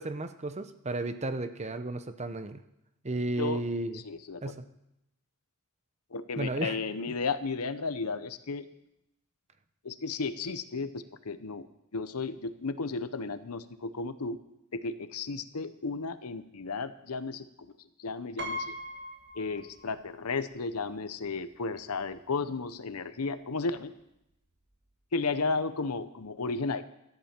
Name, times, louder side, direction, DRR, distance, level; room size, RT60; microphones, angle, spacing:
voice 1, 0.0-2.6 3.0-4.0 4.4-4.6 6.4-6.8, right 2 dB, 30° right, 9 dB, 0.8 m, -33 dB
voice 2, 4.0-4.5 6.1-8.7 9.8-11.7 11.9-14.4 14.7-17.5 18.0-18.7 19.4-23.9 25.1-26.8, left 4 dB, 80° left, 12 dB, 0.8 m, -33 dB
Piano, 18.4-20.2 20.5-20.6 21.8-21.9 22.2-22.4, equal, 50° right, 1.4 m, -39 dB
17.5 x 13.5 x 4.5 m, 0.84 s
head